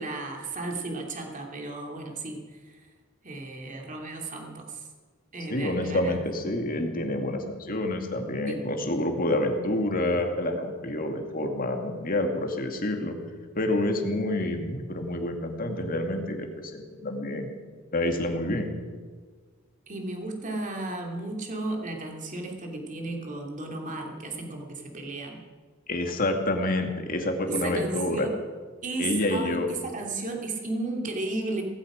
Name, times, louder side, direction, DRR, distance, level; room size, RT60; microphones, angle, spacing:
voice 1, 0.0-2.8 3.2-4.8 5.3-6.2 8.5-8.6 19.9-25.4 27.5-28.4 28.8-31.6, right 2 dB, 40° right, 1 dB, 2.7 m, -34 dB
voice 2, 5.5-13.1 13.5-17.5 17.9-18.7 25.9-28.3 29.0-29.7, left 1 dB, 45° left, 4 dB, 2.2 m, -28 dB
18.0 x 15.5 x 5.1 m, 1.5 s
head